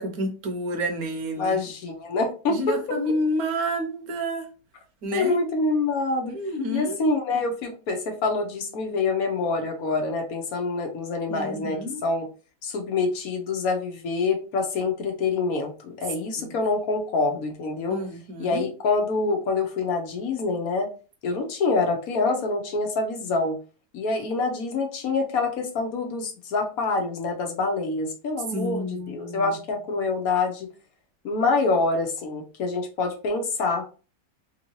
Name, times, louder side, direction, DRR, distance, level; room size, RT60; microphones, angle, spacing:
voice 1, 0.0-1.6 2.5-4.5 5.0-5.4 6.3-7.0 11.3-12.0 16.4-16.5 17.9-18.7 28.5-29.6, equal, 70° right, 1.3 m, -29 dB
voice 2, 1.4-2.8 5.1-6.3 6.7-12.3 12.6-18.0 18.4-20.9 21.2-23.6 23.9-30.7 31.2-33.9, left 3 dB, 65° left, 1.2 m, -26 dB
3.6 x 2.7 x 3.0 m
omnidirectional pair, 1.6 m